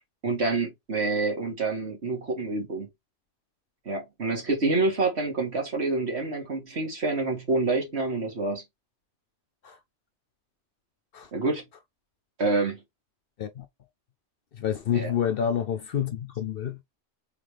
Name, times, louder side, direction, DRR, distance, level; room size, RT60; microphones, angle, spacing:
voice 1, 0.2-2.9 3.9-8.6 11.3-11.6 12.4-12.8 14.9-15.1, right 3 dB, 60° right, 2.0 m, -27 dB
voice 2, 14.6-17.0, left 8 dB, 60° left, 0.7 m, -28 dB
3.9 x 3.5 x 3.2 m
omnidirectional pair, 1.2 m